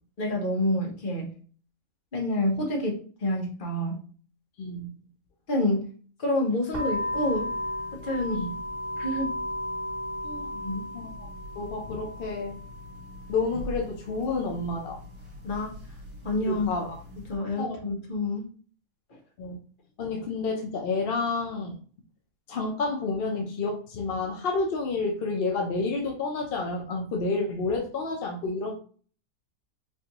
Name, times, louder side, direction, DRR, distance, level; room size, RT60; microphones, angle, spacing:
voice 1, 0.2-1.3 2.1-4.0 5.5-5.8 6.2-7.5 8.0-8.4 9.0-9.3 10.6-10.9 15.4-15.7 16.2-16.9 17.3-18.5 19.1-19.2, left 1 dB, 40° left, 0 dB, 1.1 m, -28 dB
voice 2, 4.6-4.9 8.3-8.5 10.2-10.5 10.9-11.3 11.6-12.6 13.3-15.0 16.5-17.0 17.6-17.8 19.4-19.6 20.0-21.8 22.5-28.7, left 3 dB, 55° left, 2 dB, 0.6 m, -30 dB
sound 1, 6.7-17.4, left 1 dB, 55° right, 1.8 m, -36 dB
4.4 x 2.6 x 2.9 m, 0.42 s
omnidirectional pair, 1.6 m